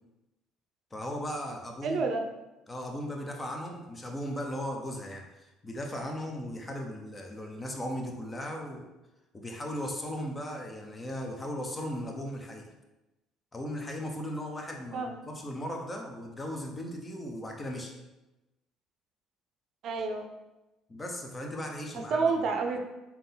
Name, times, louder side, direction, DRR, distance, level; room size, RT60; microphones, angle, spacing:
voice 1, 0.9-2.1 2.7-8.9 9.3-12.7 13.5-17.9 20.9-22.3, equal, 25° left, 2 dB, 0.9 m, -37 dB
voice 2, 1.8-2.2 14.9-15.2 19.8-20.3 21.9-22.8, right 4 dB, 60° right, 4 dB, 0.6 m, -29 dB
3.8 x 2.9 x 3.8 m, 1.0 s
hypercardioid pair, 70°, 0 cm